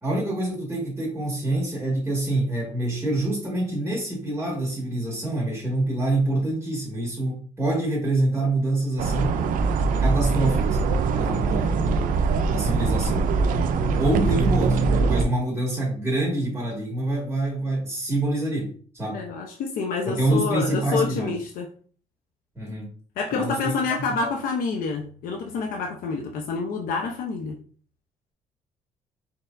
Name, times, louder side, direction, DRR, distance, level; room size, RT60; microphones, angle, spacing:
voice 1, 0.0-9.4 10.0-10.8 11.1-11.9 12.5-13.3 14.0-14.8 15.1-19.2 20.1-21.3 22.6-22.9 23.3-23.7 24.2-24.3, right 1 dB, 15° right, 2.0 m, -26 dB
sound 1, 9.0-15.2, right 4 dB, 70° right, 0.5 m, -22 dB
voice 2, 19.1-21.7 23.2-27.6, left 4 dB, 75° left, 0.8 m, -28 dB
4.3 x 3.5 x 2.6 m
cardioid pair, 80°, 14 cm